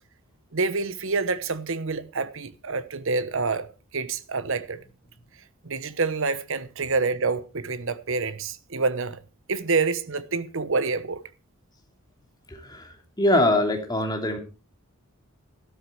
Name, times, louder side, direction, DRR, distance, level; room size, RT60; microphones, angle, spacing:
voice 1, 0.5-3.7 3.9-4.8 5.6-9.2 9.5-11.2, right 4 dB, 60° right, 1.1 m, -27 dB
voice 2, 12.5-14.4, left 1 dB, 20° left, 2.8 m, -23 dB
13.0 x 12.5 x 4.5 m
head